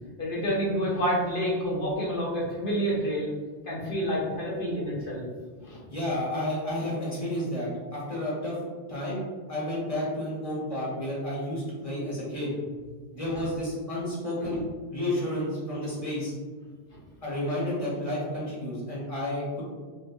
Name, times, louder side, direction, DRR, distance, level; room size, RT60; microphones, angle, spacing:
voice 1, 0.2-3.3 3.6-5.3 5.6-5.8 14.4-14.5, equal, 55° left, -5 dB, 1.1 m, -28 dB
voice 2, 5.9-8.6 8.9-9.2 9.5-12.7 13.1-14.6 14.9-16.3 17.2-19.6, left 1 dB, 30° left, -7 dB, 1.6 m, -31 dB
5.7 x 2.9 x 2.6 m, 1.5 s
omnidirectional pair, 1.1 m